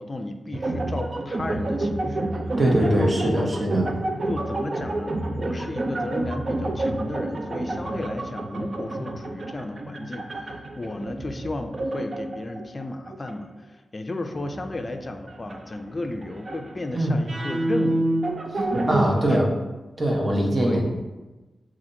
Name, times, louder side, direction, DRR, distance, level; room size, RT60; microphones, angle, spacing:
voice 1, 0.0-2.4 2.8-3.5 4.3-18.1 19.1-19.4 20.6-20.8, left 2 dB, 40° left, 6 dB, 0.4 m, -34 dB
sound 1, 0.5-13.4 14.3-19.1, right 2 dB, 55° right, 0.5 m, -29 dB
voice 2, 2.6-3.9 16.9-17.2 18.9-19.5 20.0-20.8, right 1 dB, 35° right, -2 dB, 1.1 m, -22 dB
7.3 x 2.5 x 2.7 m, 1.1 s
cardioid pair, 55°, 0 cm